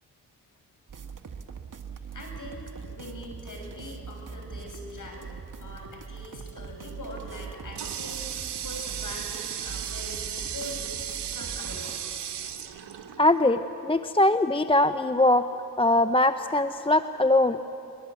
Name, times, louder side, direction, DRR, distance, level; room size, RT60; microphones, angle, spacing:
sound 1, 0.9-11.9, right 5 dB, 50° right, 1.7 m, -42 dB
voice 1, 2.1-5.3 5.6-8.3 8.6-11.0 11.3-12.0, left 1 dB, 50° left, 2 dB, 6.9 m, -42 dB
Water tap faucet, 7.1-13.6, right 9 dB, 75° right, 1.5 m, -36 dB
voice 2, 13.2-15.5 15.8-17.6, left 1 dB, 15° left, 11 dB, 0.7 m, -22 dB
21.5 x 21.0 x 8.4 m, 2.8 s
supercardioid pair, 45°, 41 cm